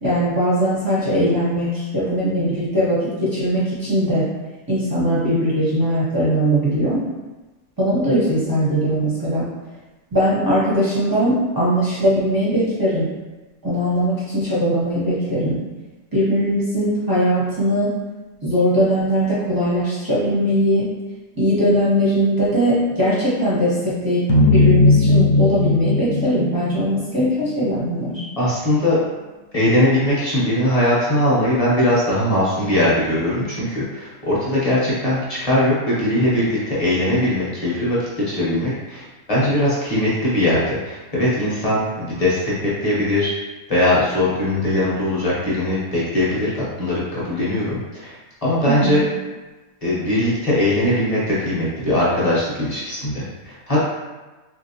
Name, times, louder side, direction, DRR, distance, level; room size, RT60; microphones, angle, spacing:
voice 1, 0.0-4.3 4.7-7.0 7.8-9.5 10.1-13.1 13.6-15.6 16.1-17.9 18.4-20.9 21.4-24.2 24.5-28.2 48.6-49.0, equal, 25° right, -9 dB, 0.5 m, -20 dB
sound 1, 24.3-27.5, left 2 dB, 70° left, 0.9 m, -17 dB
voice 2, 28.4-29.0 29.5-43.3 43.7-48.1 48.4-49.0 49.8-53.9, left 1 dB, 35° left, -8 dB, 0.7 m, -20 dB
3.1 x 2.6 x 2.7 m, 1.2 s
omnidirectional pair, 1.5 m